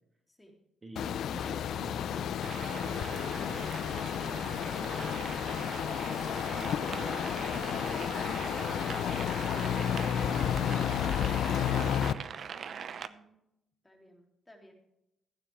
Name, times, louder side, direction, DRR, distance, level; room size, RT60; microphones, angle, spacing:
voice 1, 0.8-3.8 4.1-9.8 10.6-12.5, right 2 dB, 25° right, 4 dB, 1.5 m, -49 dB
sound 1, 1.0-12.1, left 9 dB, 70° left, 0.5 m, -32 dB
sound 2, 2.4-13.1, right 7 dB, 55° right, 0.7 m, -42 dB
voice 2, 13.0-13.3 13.8-14.7, equal, 10° left, 1 dB, 3.3 m, -58 dB
15.5 x 9.4 x 3.5 m, 0.84 s
cardioid pair, 90°, 0 cm